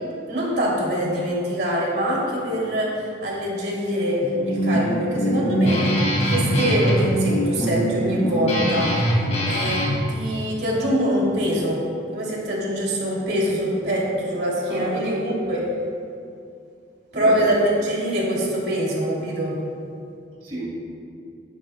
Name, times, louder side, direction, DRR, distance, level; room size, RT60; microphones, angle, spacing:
voice 1, 0.3-5.9 6.3-9.0 9.4-9.8 10.1-11.8 12.1-15.7 17.1-19.6, equal, 65° right, -4 dB, 2.7 m, -24 dB
Guitar, 4.2-10.0, equal, 40° left, 1.9 m, -22 dB
voice 2, 14.7-15.4 17.1-17.6 20.4-20.7, right 1 dB, 30° right, -5 dB, 2.4 m, -33 dB
19.0 x 10.0 x 2.2 m, 2.4 s
head